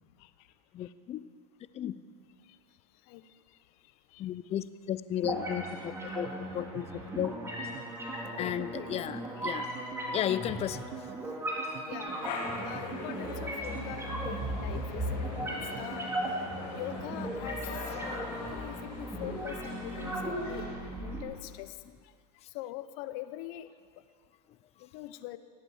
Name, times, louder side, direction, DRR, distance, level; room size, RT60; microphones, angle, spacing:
voice 1, 0.7-1.2 1.7-1.9 4.2-6.3 6.5-6.9 7.1-7.3 8.4-9.7 10.1-10.9, left 11 dB, 30° left, 15 dB, 0.6 m, -33 dB
sound 1, 5.2-21.2, right 1 dB, 10° right, 2.9 m, -37 dB
sound 2, 5.9-18.5 18.7-19.8 20.1-20.4 20.7-21.4, right 10 dB, 35° right, 0.8 m, -48 dB
voice 2, 8.2-8.9 9.4-9.6 11.9-12.1 12.7-16.1 16.7-17.6 18.1-20.7 21.0-21.8 22.5-23.7 24.8-25.4, left 15 dB, 60° left, 13 dB, 0.8 m, -43 dB
sound 3, 12.1-20.7, left 3 dB, 80° left, 4.2 m, -42 dB
18.0 x 8.3 x 7.3 m, 2.1 s
supercardioid pair, 115°, 21 cm